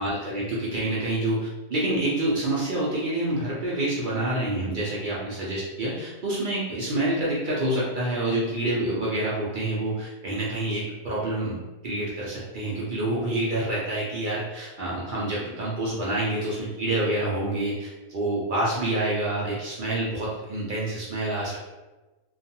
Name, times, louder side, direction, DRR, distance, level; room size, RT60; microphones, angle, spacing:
voice 1, 0.0-21.7, right 1 dB, 60° right, -7 dB, 0.5 m, -27 dB
2.4 x 2.3 x 2.7 m, 1.1 s
omnidirectional pair, 1.5 m